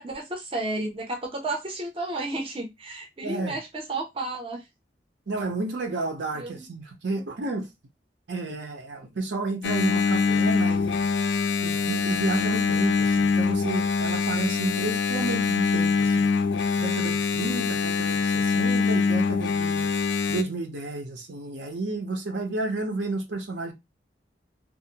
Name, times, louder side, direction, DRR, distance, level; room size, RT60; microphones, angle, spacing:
voice 1, 0.0-4.6 6.3-6.6, right 2 dB, 30° right, 0.5 m, -32 dB
voice 2, 3.2-3.6 5.3-7.7 8.3-11.1 11.6-16.3 16.8-19.9 20.3-23.7, right 2 dB, 75° right, 0.7 m, -31 dB
Engine, 9.6-20.4, left 5 dB, 75° left, 0.3 m, -24 dB
2.5 x 2.0 x 2.7 m
head